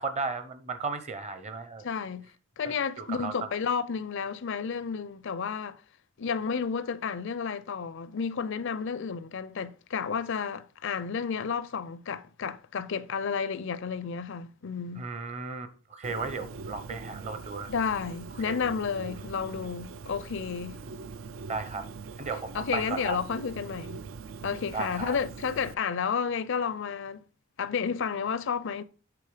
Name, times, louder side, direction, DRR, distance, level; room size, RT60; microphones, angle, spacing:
voice 1, 0.0-1.9 2.6-3.5 14.9-17.7 18.5-18.6 21.4-21.9 22.2-23.2 24.7-25.2, right 4 dB, 30° right, 0.8 m, -35 dB
voice 2, 1.8-2.3 2.6-5.8 6.2-15.1 17.7-20.8 22.5-24.0 24.4-27.2 27.6-28.8, left 6 dB, 60° left, 0.5 m, -31 dB
Bird, 16.0-25.7, right 4 dB, 65° right, 0.4 m, -42 dB
8.4 x 4.1 x 4.9 m
head